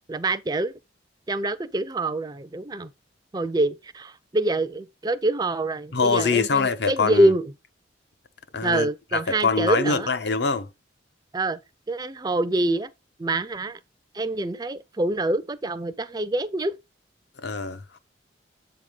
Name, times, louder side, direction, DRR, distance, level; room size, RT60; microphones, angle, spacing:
voice 1, 0.1-0.7 1.3-2.9 3.3-7.5 8.6-10.1 11.3-11.6 11.9-12.9 13.2-13.8 14.1-16.7, right 2 dB, 20° right, 0.4 m, -25 dB
voice 2, 5.9-7.3 8.5-10.7 17.4-18.0, left 4 dB, 65° left, 0.8 m, -24 dB
8.0 x 3.7 x 4.9 m
head